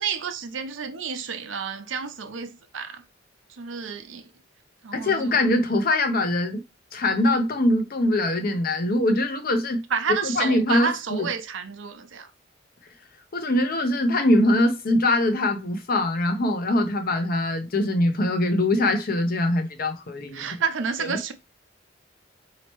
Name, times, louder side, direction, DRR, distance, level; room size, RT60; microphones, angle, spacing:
voice 1, 0.0-3.0 3.6-4.2 4.8-5.4 9.9-12.3 20.3-21.3, right 6 dB, 85° right, 0.6 m, -30 dB
voice 2, 4.9-6.6 6.9-9.8 10.2-11.3 13.3-20.5 21.0-21.2, left 1 dB, 50° left, 0.7 m, -23 dB
4.3 x 2.8 x 3.0 m
head